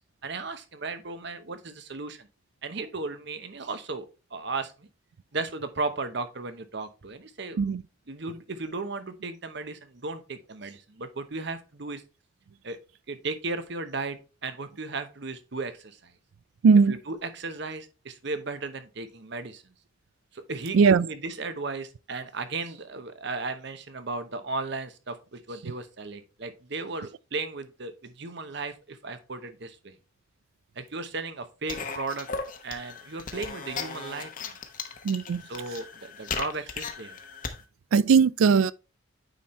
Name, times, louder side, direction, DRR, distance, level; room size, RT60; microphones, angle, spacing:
voice 1, 0.2-2.3 2.6-4.1 4.3-4.9 5.3-7.7 8.1-12.0 12.6-12.8 13.1-16.1 16.9-19.6 20.3-29.9 30.8-32.3 32.6-34.6 35.4-37.2, right 3 dB, 55° right, 0.9 m, -35 dB
voice 2, 16.6-17.0 20.7-21.1 35.0-35.4 37.9-38.7, right 5 dB, 85° right, 0.4 m, -19 dB
sound 1, 31.7-37.6, left 5 dB, 40° left, 0.9 m, -37 dB
9.2 x 4.4 x 3.1 m
head